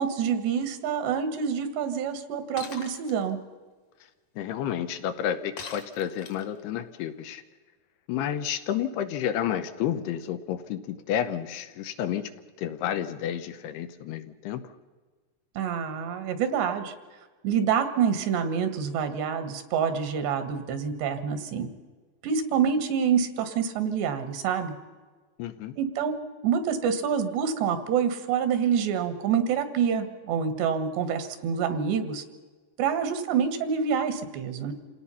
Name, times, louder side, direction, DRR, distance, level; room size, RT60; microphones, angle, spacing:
voice 1, 0.0-3.4 15.6-16.9 17.4-21.7 22.2-24.7 25.8-26.2 26.4-32.2 32.8-34.7, right 7 dB, 80° right, 9 dB, 3.7 m, -27 dB
Shatter, 2.6-3.1 5.6-6.6, left 6 dB, 50° left, 2.6 m, -40 dB
voice 2, 4.4-7.4 8.1-12.3 12.6-14.6 25.4-25.7, left 10 dB, 75° left, 10 dB, 2.9 m, -30 dB
27.5 x 17.5 x 5.7 m, 1.4 s
omnidirectional pair, 4.9 m